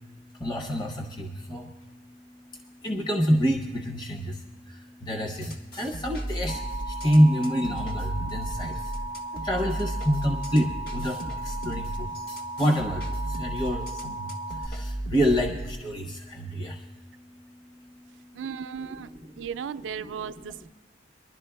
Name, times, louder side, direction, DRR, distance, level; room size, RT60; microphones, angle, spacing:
voice 1, 0.4-1.7 2.8-4.4 5.0-6.6 7.0-8.8 9.4-11.2 11.4-12.1 12.6-14.2 14.6-16.8 19.8-19.9, equal, 25° left, 2 dB, 0.7 m, -26 dB
sound 1, 5.3-15.8, right 1 dB, 60° left, 1.4 m, -35 dB
Alarm, 6.5-14.7, right 2 dB, 75° left, 2.0 m, -36 dB
voice 2, 18.3-19.1 19.4-20.7, right 7 dB, 85° right, 13 dB, 0.4 m, -35 dB
25.0 x 11.5 x 2.2 m, 1.2 s
head